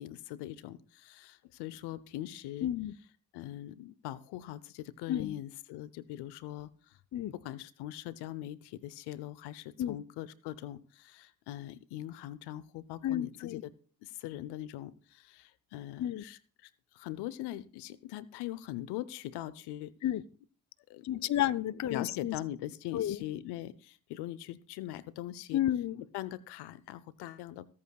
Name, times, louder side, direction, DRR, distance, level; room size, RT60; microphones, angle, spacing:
voice 1, 0.0-2.7 3.3-6.7 7.4-13.7 14.0-16.7 16.9-19.9 20.9-21.1 21.9-25.6 26.1-27.7, left 14 dB, 85° left, 0.7 m, -41 dB
voice 2, 2.6-2.9 5.1-5.3 7.1-7.3 9.8-10.0 13.0-13.6 16.0-16.2 20.0-20.2 21.0-22.4 22.9-23.2 25.5-26.0, left 12 dB, 45° left, 0.6 m, -31 dB
23.5 x 8.6 x 2.3 m
supercardioid pair, 50°, 39 cm